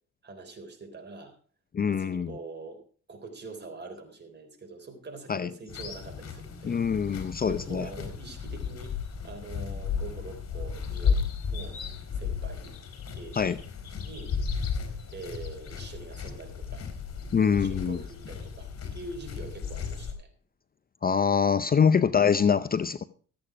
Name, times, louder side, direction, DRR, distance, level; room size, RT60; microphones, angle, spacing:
voice 1, 0.2-1.4 1.9-2.8 3.1-8.9 9.2-11.2 11.5-11.8 12.1-12.6 13.1-13.6 14.0-14.4 15.1-16.9 17.5-20.3 21.6-21.8, right 3 dB, 35° right, 5 dB, 3.7 m, -44 dB
voice 2, 1.7-2.4 5.3-5.5 6.6-7.9 13.4-13.6 17.3-18.0 21.0-23.0, left 6 dB, 30° left, 14 dB, 0.6 m, -24 dB
sound 1, 5.7-20.1, left 6 dB, 50° left, 4.0 m, -34 dB
14.0 x 8.8 x 5.0 m, 0.42 s
cardioid pair, 90°, 30 cm